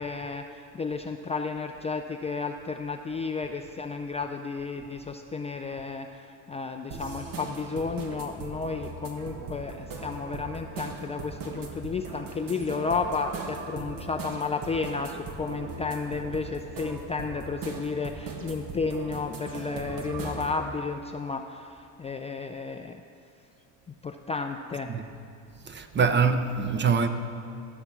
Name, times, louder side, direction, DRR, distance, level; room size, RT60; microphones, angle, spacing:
voice 1, 0.0-23.0 24.0-24.9, left 4 dB, 15° left, 0.4 m, -32 dB
sound 1, 6.9-20.6, right 4 dB, 55° right, 1.6 m, -39 dB
voice 2, 25.6-27.1, right 5 dB, 25° right, 0.8 m, -24 dB
13.0 x 6.9 x 5.9 m
supercardioid pair, 90°, 40 cm